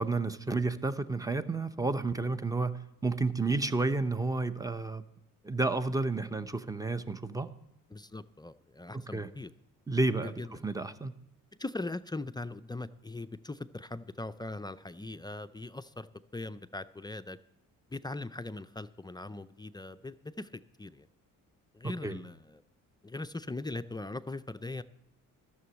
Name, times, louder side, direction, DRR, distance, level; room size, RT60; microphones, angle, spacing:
voice 1, 0.0-5.0 5.4-7.5 9.1-9.3 9.9-10.3 10.6-11.1 21.8-22.2, right 3 dB, 10° right, 12 dB, 0.7 m, -31 dB
voice 2, 7.9-9.5 10.2-10.7 11.6-16.1 16.3-17.4 17.9-21.1 21.7-22.6 23.0-24.8, left 2 dB, 15° left, 12 dB, 0.4 m, -40 dB
12.5 x 6.9 x 8.0 m, 0.80 s
cardioid pair, 80°, 34 cm